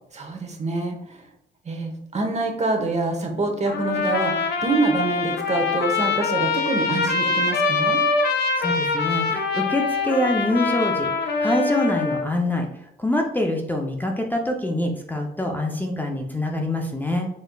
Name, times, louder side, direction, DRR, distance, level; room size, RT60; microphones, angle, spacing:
voice 1, 0.1-1.2 1.6-8.0, right 3 dB, 35° right, 3 dB, 0.9 m, -26 dB
Trumpet, 3.7-12.3, left 4 dB, 55° left, 0.7 m, -24 dB
voice 2, 8.6-12.7 13.0-17.3, left 1 dB, 10° left, 2 dB, 0.5 m, -25 dB
4.2 x 3.7 x 2.3 m, 0.81 s
cardioid pair, 90°, 20 cm